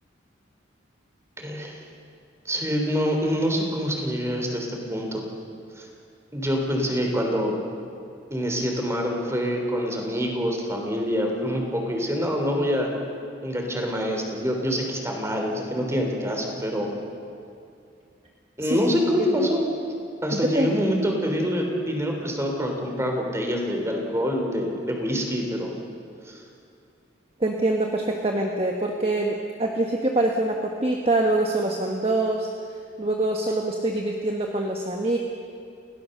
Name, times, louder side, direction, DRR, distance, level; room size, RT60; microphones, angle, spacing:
voice 1, 1.4-1.8 2.4-5.2 5.8-5.9 6.3-7.5 8.3-12.9 13.4-16.9 18.6-19.7 20.2-25.7 26.2-26.4, equal, 15° right, 2 dB, 3.4 m, -26 dB
voice 2, 20.3-20.7 27.4-32.5 33.0-35.2, right 2 dB, 30° right, 1 dB, 1.3 m, -24 dB
29.0 x 17.5 x 6.7 m, 2.5 s
head